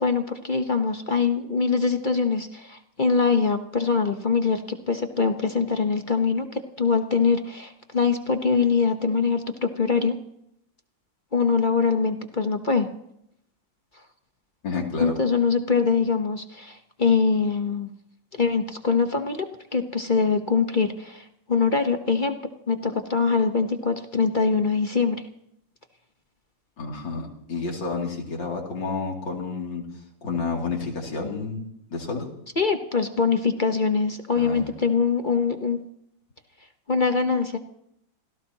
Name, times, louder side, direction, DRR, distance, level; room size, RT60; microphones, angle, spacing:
voice 1, 0.0-4.6 4.9-10.1 11.3-12.9 15.0-17.9 18.4-19.5 19.7-22.4 22.7-25.2 32.6-35.8 36.9-37.6, left 5 dB, 35° left, 6 dB, 0.9 m, -23 dB
voice 2, 14.6-15.1 26.8-29.8 30.2-32.3 34.4-34.6, left 4 dB, 75° left, 0 dB, 3.6 m, -30 dB
27.0 x 17.0 x 2.9 m, 0.76 s
omnidirectional pair, 2.0 m